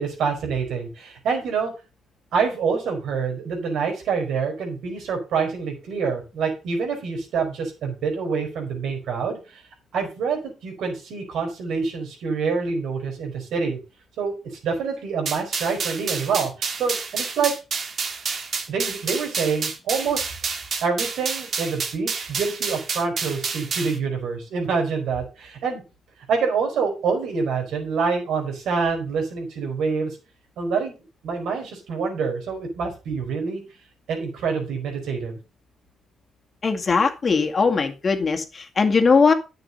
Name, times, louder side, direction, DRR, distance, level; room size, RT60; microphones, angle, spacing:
voice 1, 0.0-1.7 2.3-9.6 9.9-13.8 14.2-14.3 14.6-17.5 18.7-20.3 20.8-25.8 26.3-30.2 30.6-30.9 31.2-33.6 34.1-35.4, right 5 dB, 75° right, 3 dB, 4.6 m, -26 dB
sound 1, 15.3-24.0, right 5 dB, 50° right, 1.9 m, -29 dB
voice 2, 36.6-39.3, left 4 dB, 35° left, 5 dB, 2.0 m, -20 dB
10.0 x 6.7 x 5.4 m, 0.30 s
cardioid pair, 90°, 0 cm